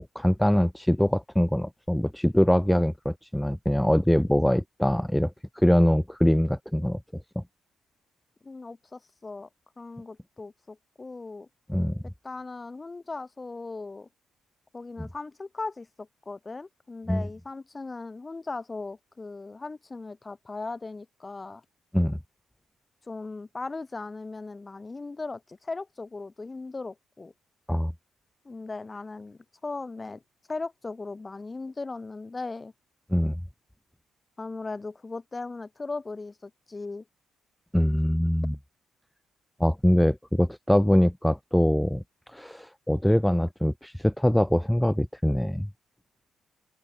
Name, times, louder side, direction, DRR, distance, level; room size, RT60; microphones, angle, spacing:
voice 1, 0.0-7.0 7.4-7.5 11.7-12.0 17.1-17.2 21.9-22.2 27.7-27.9 33.1-33.4 37.7-38.5 39.6-42.0 42.3-45.7, equal, 5° left, 0.7 m, -23 dB
voice 2, 8.4-9.5 9.8-11.5 12.2-14.1 14.7-21.6 23.1-27.3 28.4-30.2 30.5-32.7 34.4-37.0, left 3 dB, 25° left, 1.6 m, -38 dB
open air
cardioid pair, 90°, 0 cm